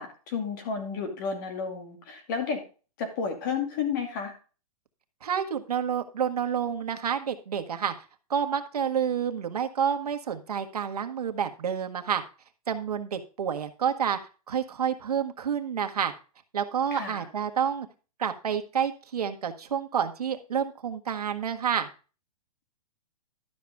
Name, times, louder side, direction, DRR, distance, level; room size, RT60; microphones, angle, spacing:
voice 1, 0.0-2.6 3.0-4.3 16.9-17.3, left 5 dB, 30° left, 5 dB, 2.5 m, -32 dB
voice 2, 5.2-7.9 8.3-12.2 12.7-14.2 14.5-16.1 16.5-17.9 18.2-21.9, right 8 dB, 90° right, 7 dB, 1.7 m, -29 dB
12.5 x 6.7 x 3.5 m, 0.35 s
hypercardioid pair, 175°, 19 cm